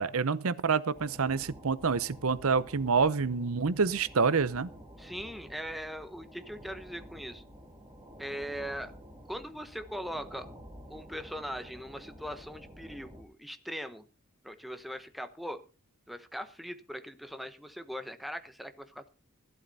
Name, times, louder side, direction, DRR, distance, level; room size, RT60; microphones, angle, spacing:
voice 1, 0.0-4.7, right 5 dB, 85° right, 0.8 m, -27 dB
sound 1, 0.9-13.2, equal, 15° right, 2.6 m, -50 dB
voice 2, 5.0-7.4 8.2-8.9 9.3-10.5 10.9-14.0 14.4-15.6 16.1-19.1, equal, ahead, 1.0 m, -40 dB
14.5 x 12.0 x 4.1 m
head